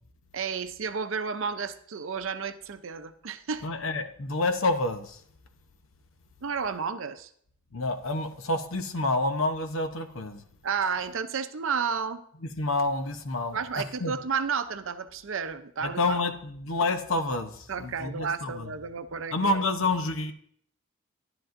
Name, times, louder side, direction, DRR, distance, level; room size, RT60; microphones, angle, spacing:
voice 1, 0.3-3.7 6.4-7.3 10.6-12.2 13.5-16.2 17.7-19.4, right 6 dB, 65° right, 10 dB, 0.6 m, -32 dB
voice 2, 3.6-5.2 7.7-10.4 12.6-14.1 15.8-18.7 19.3-20.3, left 2 dB, 70° left, 8 dB, 0.8 m, -28 dB
11.0 x 10.5 x 2.6 m, 0.63 s
head